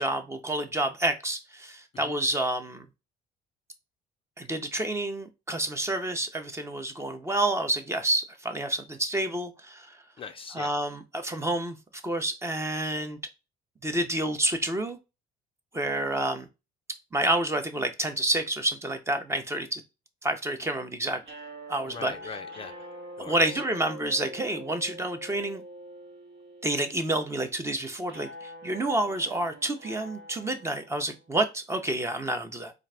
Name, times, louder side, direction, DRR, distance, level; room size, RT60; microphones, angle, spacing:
voice 1, 0.0-2.9 4.4-9.9 10.5-11.8 12.0-13.2 13.8-15.0 15.7-16.5 17.1-19.8 20.2-21.2 21.7-22.1 23.3-25.6 26.6-32.7, right 1 dB, 15° right, 0.7 m, -29 dB
voice 2, 10.2-10.7 21.9-22.9 23.2-23.6, left 5 dB, 35° left, 0.4 m, -42 dB
sound 1, 21.2-31.4, equal, 70° right, 1.3 m, -45 dB
3.9 x 2.5 x 3.3 m
cardioid pair, 110°, 17 cm